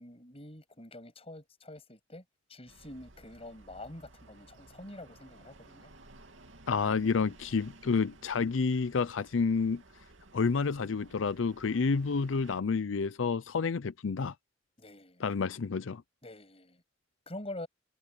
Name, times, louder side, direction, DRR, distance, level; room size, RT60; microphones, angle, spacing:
voice 1, 0.0-2.2 2.5-5.9 14.8-15.3 16.2-16.8 17.3-17.7, left 1 dB, 30° left, 7.9 m, -46 dB
sound 1, 2.7-12.6, right 2 dB, 85° right, 2.6 m, -56 dB
voice 2, 6.7-9.8 10.3-14.3 15.2-16.0, left 5 dB, 90° left, 0.5 m, -29 dB
head